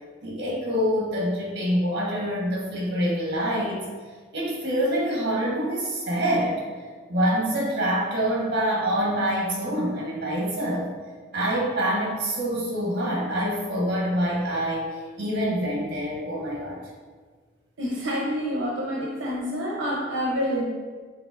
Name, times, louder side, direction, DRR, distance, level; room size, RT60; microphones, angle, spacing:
voice 1, 0.2-3.8 4.3-6.6 7.1-10.9 11.3-14.9 15.2-16.8, equal, 60° right, -3 dB, 1.1 m, -26 dB
voice 2, 17.8-20.6, equal, 80° right, -4 dB, 0.7 m, -27 dB
4.9 x 3.6 x 2.5 m, 1.5 s
head